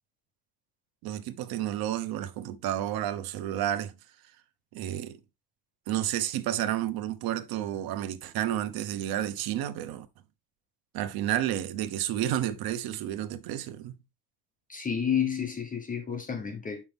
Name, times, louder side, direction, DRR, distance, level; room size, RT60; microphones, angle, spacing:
voice 1, 1.0-3.9 4.7-5.2 5.9-10.1 10.9-14.0, right 12 dB, 75° right, 1.0 m, -31 dB
voice 2, 14.7-16.8, left 8 dB, 20° left, 1.1 m, -30 dB
6.9 x 5.7 x 3.4 m
cardioid pair, 135°, 36 cm